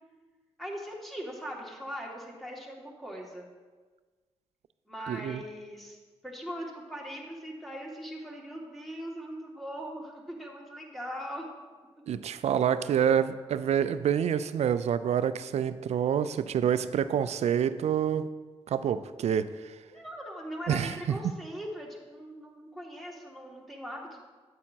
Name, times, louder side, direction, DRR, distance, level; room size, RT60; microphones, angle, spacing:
voice 1, 0.6-3.5 4.9-11.5 12.3-12.5 12.8-13.3 19.9-24.2, equal, ahead, -2 dB, 2.1 m, -40 dB
voice 2, 5.1-5.4 12.1-18.3 18.7-19.5 20.7-21.2, right 8 dB, 65° right, 13 dB, 0.4 m, -27 dB
8.7 x 8.6 x 2.8 m, 1.4 s
supercardioid pair, 55°, 12 cm